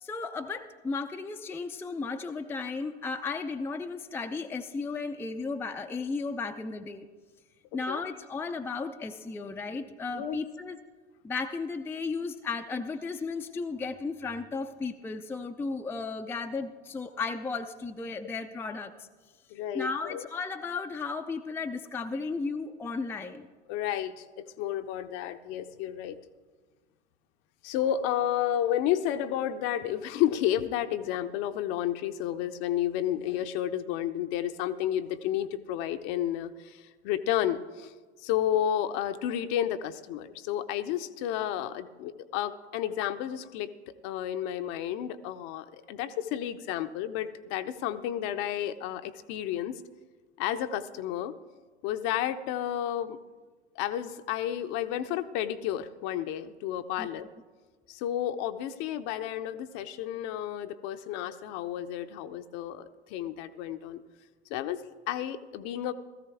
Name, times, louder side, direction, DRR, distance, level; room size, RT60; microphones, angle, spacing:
voice 1, 0.0-7.1 7.7-10.8 11.2-19.1 19.7-23.5 57.0-57.1, left 4 dB, 5° left, 6 dB, 0.5 m, -34 dB
voice 2, 19.5-20.2 23.7-26.2 27.6-37.9 38.2-43.7 44.0-49.8 50.4-51.3 51.8-53.2 53.8-57.3 57.9-64.0 64.5-65.9, left 11 dB, 45° left, 10 dB, 0.7 m, -31 dB
17.0 x 14.5 x 3.5 m, 1.4 s
figure-of-eight pair, 75°, 35 cm